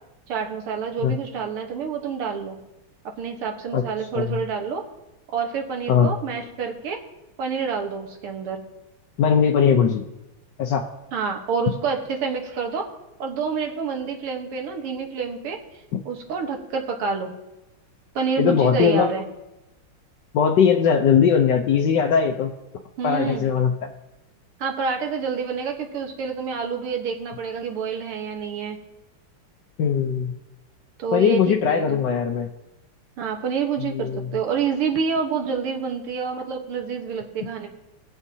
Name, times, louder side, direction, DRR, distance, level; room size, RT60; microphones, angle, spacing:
voice 1, 0.3-2.6 3.2-4.8 5.3-7.0 7.4-8.6 11.1-12.9 13.2-15.6 16.1-17.3 18.2-19.2 23.0-23.4 24.6-28.8 31.0-32.0 33.2-37.7, right 6 dB, 80° right, 3 dB, 2.1 m, -28 dB
voice 2, 9.2-10.0 10.6-10.9 15.9-16.0 18.4-19.1 20.3-22.5 23.0-23.7 29.8-30.4 31.1-32.5 33.9-34.3, left 7 dB, 65° left, 2 dB, 1.2 m, -20 dB
20.0 x 7.3 x 2.8 m, 0.94 s
omnidirectional pair, 2.4 m